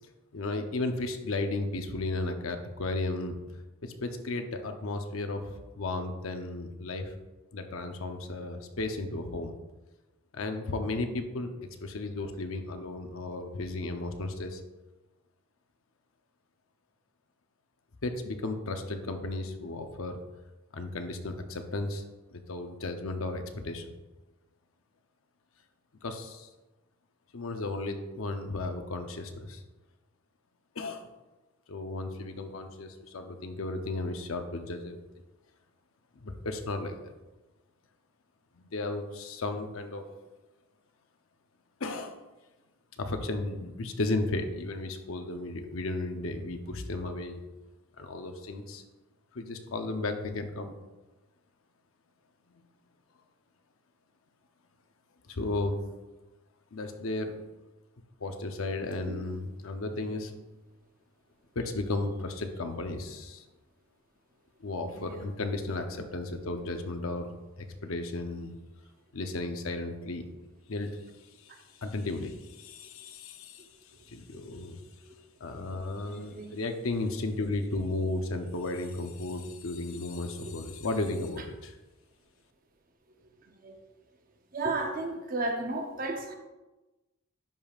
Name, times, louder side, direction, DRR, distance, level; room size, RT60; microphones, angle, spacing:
voice 1, 0.0-3.4 3.8-7.1 7.5-9.6 10.3-11.5 11.8-14.6 18.0-20.2 20.7-22.0 22.3-23.9 26.0-26.5 27.3-29.6 30.7-31.1 31.7-35.0 36.1-37.1 38.6-40.1 41.8-42.2 43.0-47.4 48.0-48.8 49.3-50.7 55.3-55.8 56.7-57.4 58.2-60.3 61.5-63.4 64.6-67.3 67.6-68.5 69.1-70.2 70.7-71.0 71.4-71.5 71.8-73.7 74.1-74.8 75.4-81.8, left 2 dB, 75° left, 0.7 m, -34 dB
voice 2, 65.0-65.3 74.3-74.7 76.1-76.5 80.4-80.5 83.6-83.7 84.5-86.4, right 2 dB, 40° right, 0.7 m, -34 dB
11.0 x 5.2 x 2.4 m
head